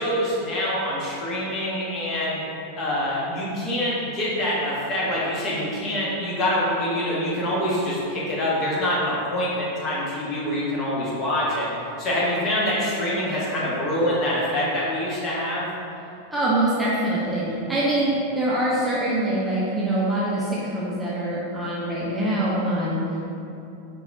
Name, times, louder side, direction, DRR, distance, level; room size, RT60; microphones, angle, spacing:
voice 1, 0.0-2.4 2.8-11.7 12.0-15.7, left 1 dB, 35° left, -7 dB, 1.3 m, -25 dB
voice 2, 16.3-23.0, right 1 dB, 10° right, -8 dB, 0.7 m, -24 dB
4.9 x 3.9 x 2.6 m, 2.7 s
figure-of-eight pair, 90°, 0 cm